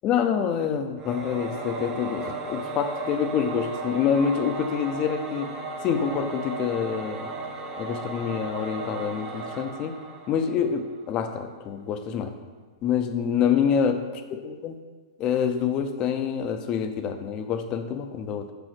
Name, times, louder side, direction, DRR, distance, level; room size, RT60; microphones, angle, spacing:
voice 1, 0.0-5.5 5.8-7.3 7.8-10.0 10.3-12.3 12.8-14.7 15.2-18.5, left 7 dB, 30° left, 7 dB, 0.6 m, -26 dB
Singing / Musical instrument, 1.0-11.0, right 2 dB, 25° right, 0.8 m, -35 dB
4.9 x 4.7 x 6.0 m, 1.4 s
hypercardioid pair, 135°, 3 cm